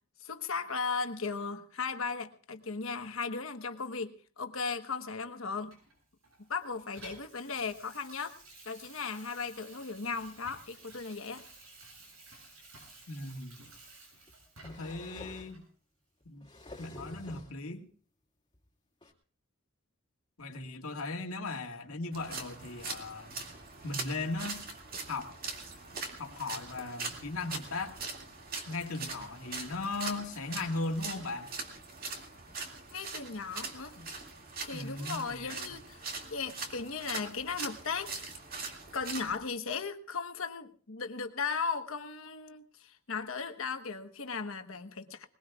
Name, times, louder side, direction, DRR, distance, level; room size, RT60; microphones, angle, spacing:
voice 1, 0.2-5.8 6.5-8.4 8.6-11.4 32.9-34.0 34.6-38.1 38.9-45.3, left 5 dB, 70° left, 7 dB, 1.2 m, -37 dB
Water tap faucet / Sink (filling or washing), 5.7-15.0 15.5-15.6, right 2 dB, 85° right, 7.9 m, -54 dB
voice 2, 13.1-13.6 14.6-15.6 16.3-16.5 16.8-17.9 20.4-23.4 23.8-24.6 25.1-25.3 26.2-28.0 28.7-31.5 34.0-34.1 34.7-35.7, left 3 dB, 85° left, 3 dB, 1.9 m, -37 dB
sound 1, 13.2-13.3 14.3-15.6 16.2-17.6 18.5-18.6 19.0-19.1, left 1 dB, 20° left, 2.2 m, -48 dB
sound 2, 22.1-39.4, right 4 dB, 45° right, 2.3 m, -42 dB
21.5 x 21.0 x 2.4 m, 0.43 s
head